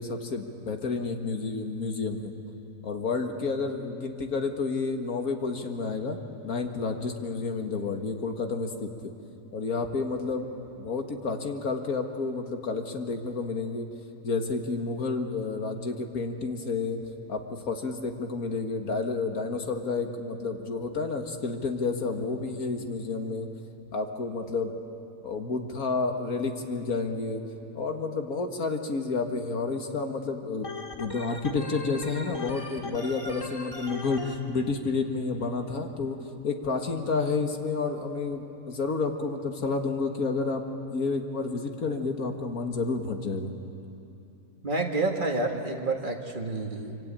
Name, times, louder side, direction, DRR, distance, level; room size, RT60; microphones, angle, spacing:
voice 1, 0.0-2.3 2.8-6.2 6.4-9.1 9.5-10.5 10.8-13.9 14.2-17.0 17.3-23.5 23.9-24.7 25.2-27.4 27.7-30.7 31.0-36.2 36.4-40.6 40.9-43.5, left 4 dB, 70° left, 4 dB, 2.2 m, -30 dB
Organ, 30.6-34.3, left 3 dB, 20° left, 2.0 m, -39 dB
voice 2, 44.6-47.0, right 2 dB, 35° right, 2 dB, 2.0 m, -29 dB
25.5 x 24.0 x 8.9 m, 2.8 s
omnidirectional pair, 1.6 m